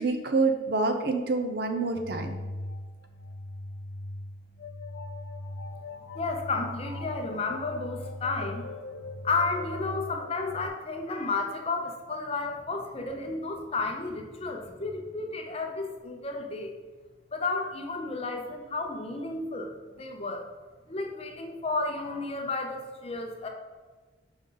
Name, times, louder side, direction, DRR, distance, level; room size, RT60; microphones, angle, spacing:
voice 1, 0.0-2.4, right 3 dB, 55° right, 5 dB, 0.6 m, -27 dB
sound 1, 2.0-10.7, left 2 dB, 90° left, 0.4 m, -39 dB
voice 2, 6.1-8.6 9.2-16.7 17.3-20.5 20.9-23.5, left 3 dB, 35° left, 3 dB, 0.6 m, -32 dB
5.3 x 5.1 x 3.8 m, 1.3 s
head